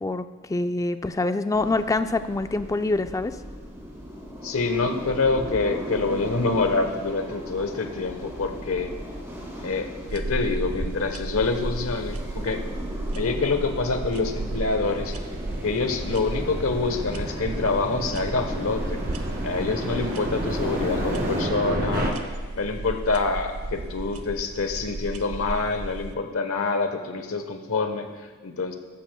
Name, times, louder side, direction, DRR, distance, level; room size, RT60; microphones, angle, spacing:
voice 1, 0.0-3.4, left 2 dB, 15° left, 10 dB, 0.4 m, -25 dB
sound 1, 1.5-21.5, equal, 15° right, 2.1 m, -37 dB
voice 2, 4.4-8.9 9.6-12.6 13.2-15.1 15.6-19.0 19.4-22.2 22.5-28.7, left 3 dB, 70° left, 6 dB, 1.1 m, -26 dB
sound 2, 10.1-26.1, right 2 dB, 75° right, 0.7 m, -34 dB
sound 3, 14.1-22.1, right 1 dB, 50° right, 1.6 m, -33 dB
14.0 x 13.0 x 2.3 m, 1.4 s
head